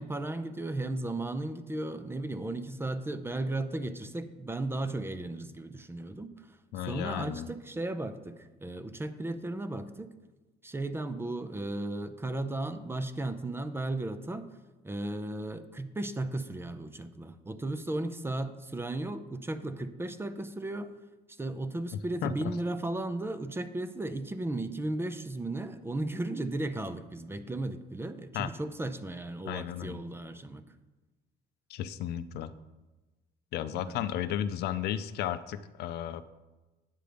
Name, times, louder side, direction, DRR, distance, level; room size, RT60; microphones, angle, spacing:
voice 1, 0.0-10.1 10.6-14.5 14.8-20.9 21.3-30.6 33.7-34.0, right 2 dB, 15° right, 11 dB, 0.6 m, -35 dB
voice 2, 6.7-7.5 22.2-22.3 28.3-28.5 29.5-30.0 31.7-32.5 33.5-36.3, left 11 dB, 75° left, 12 dB, 0.5 m, -34 dB
9.1 x 6.6 x 5.1 m, 1.2 s
cardioid pair, 110°, 17 cm